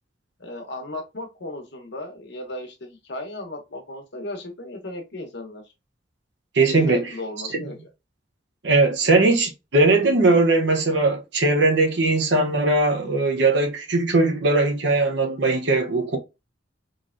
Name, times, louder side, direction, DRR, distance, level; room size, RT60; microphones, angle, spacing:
voice 1, 0.4-5.6 6.7-7.8, left 2 dB, 65° left, 1.0 m, -35 dB
voice 2, 6.5-7.1 7.5-7.7 8.6-16.2, right 2 dB, 65° right, 0.8 m, -20 dB
3.9 x 3.2 x 2.5 m
head